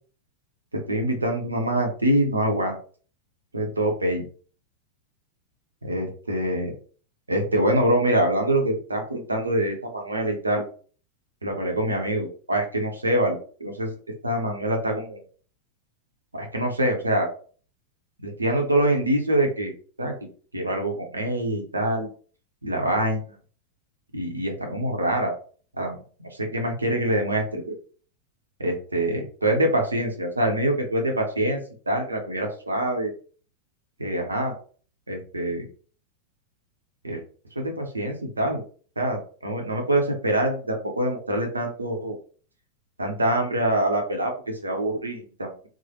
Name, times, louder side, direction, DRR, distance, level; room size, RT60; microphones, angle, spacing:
voice 1, 0.7-2.8 3.5-4.2 5.8-6.7 7.3-10.6 11.4-13.9 14.2-15.2 16.3-17.3 18.2-19.7 20.0-20.1 20.5-22.1 22.6-23.4 24.1-25.3 25.8-27.8 28.6-31.6 31.9-33.1 34.0-34.5 35.1-35.7 37.0-37.2 37.6-38.6 39.0-42.1 43.0-45.7, right 1 dB, 80° right, 2 dB, 0.6 m, -25 dB
3.1 x 2.0 x 2.9 m, 0.41 s
figure-of-eight pair, 90°, 0 cm